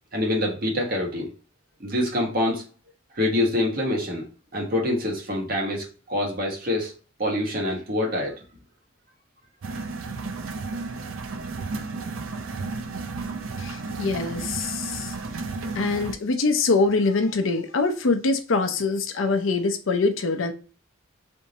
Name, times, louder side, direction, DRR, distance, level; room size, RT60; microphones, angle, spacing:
voice 1, 0.1-1.3 1.8-2.6 3.2-4.2 4.5-6.9 7.2-8.4, left 1 dB, 50° right, 1.3 m, -25 dB
sound 1, 9.6-16.1, right 3 dB, 90° right, 0.5 m, -33 dB
voice 2, 13.6-15.1 15.7-20.5, left 3 dB, 80° left, 0.6 m, -24 dB
3.5 x 2.7 x 4.1 m
head